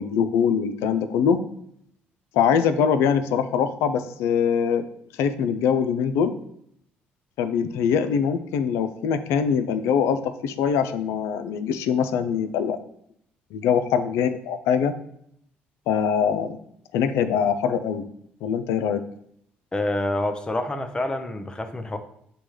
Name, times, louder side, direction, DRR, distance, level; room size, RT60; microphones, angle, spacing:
voice 1, 0.0-1.4 2.3-4.8 5.2-6.3 7.4-12.8 13.5-14.9 15.9-16.6 16.9-18.0 18.4-19.0, left 7 dB, 80° left, 11 dB, 0.4 m, -23 dB
voice 2, 19.7-22.0, left 1 dB, 20° left, 7 dB, 0.6 m, -27 dB
6.7 x 2.3 x 3.1 m, 0.71 s
supercardioid pair, 70°, 5 cm